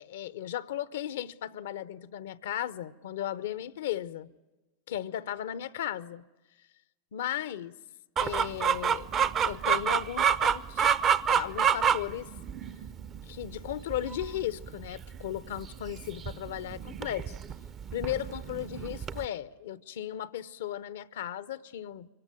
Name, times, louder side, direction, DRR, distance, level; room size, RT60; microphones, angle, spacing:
voice 1, 0.0-4.3 4.9-6.3 7.1-7.7 8.2-9.1 9.4-10.8 11.3-12.3 13.3-17.3 17.9-22.1, left 11 dB, 70° left, 0.7 m, -36 dB
Chicken rooster, 8.2-19.3, right 7 dB, 35° right, 0.7 m, -29 dB
24.5 x 17.5 x 9.2 m
hypercardioid pair, 95°, 0 cm